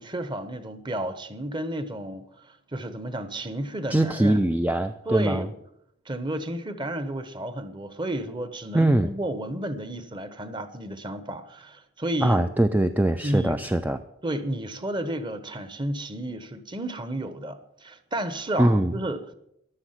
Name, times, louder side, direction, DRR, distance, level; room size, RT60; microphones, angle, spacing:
voice 1, 0.0-4.4 5.1-5.5 6.0-12.4 13.2-13.6 14.2-19.2, right 1 dB, 25° right, 11 dB, 1.1 m, -32 dB
voice 2, 3.9-5.5 8.7-9.1 12.2-14.0 18.6-18.9, right 1 dB, 10° right, 9 dB, 0.4 m, -22 dB
14.5 x 11.5 x 5.8 m, 0.77 s
head